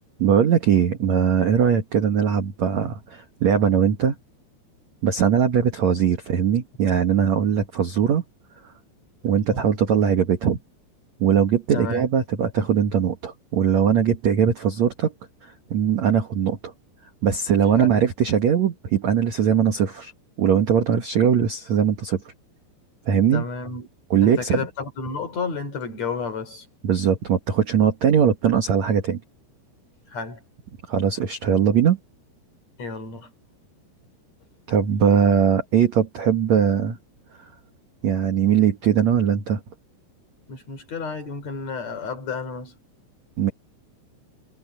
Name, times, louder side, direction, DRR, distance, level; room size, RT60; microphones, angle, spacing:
voice 1, 0.2-4.1 5.0-8.2 9.2-10.6 11.2-15.1 15.4-16.7 17.2-20.1 20.4-22.2 23.1-23.4 24.1-24.6 26.8-29.2 30.9-32.0 34.7-37.0 38.0-39.6 43.4-43.5, right 8 dB, 60° right, 1.9 m, -20 dB
voice 2, 11.7-12.1 17.8-18.1 23.3-23.9 24.2-26.7 30.1-30.4 32.8-33.3 40.5-42.8, left 4 dB, 40° left, 4.0 m, -31 dB
omnidirectional pair, 5.3 m